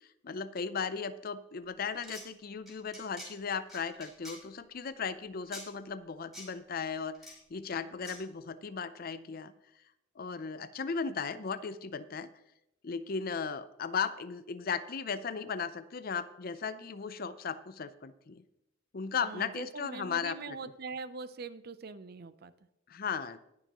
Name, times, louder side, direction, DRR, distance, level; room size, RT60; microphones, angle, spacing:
voice 1, 0.2-9.5 10.2-12.3 12.8-18.4 18.9-20.6 22.9-23.4, left 5 dB, 50° left, 14 dB, 0.5 m, -36 dB
sound 1, 1.9-2.2 2.7-3.3 3.7-4.4 5.5-5.6 6.3-6.5 7.1-7.3 8.0-8.2, left 1 dB, ahead, 4.8 m, -45 dB
voice 2, 19.2-22.5, right 4 dB, 50° right, 13 dB, 0.5 m, -42 dB
20.0 x 6.7 x 3.0 m, 0.85 s
head